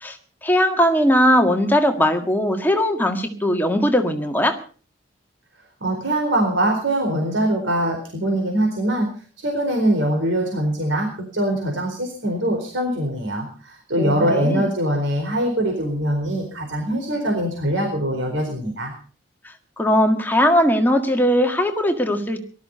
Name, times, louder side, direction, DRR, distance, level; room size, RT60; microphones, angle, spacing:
voice 1, 0.0-4.6 14.0-14.7 19.4-22.4, equal, 10° left, 4 dB, 1.7 m, -19 dB
voice 2, 5.8-9.1 9.4-11.1 11.3-18.9, right 1 dB, 80° right, 2 dB, 4.4 m, -22 dB
18.5 x 13.5 x 5.6 m, 0.41 s
head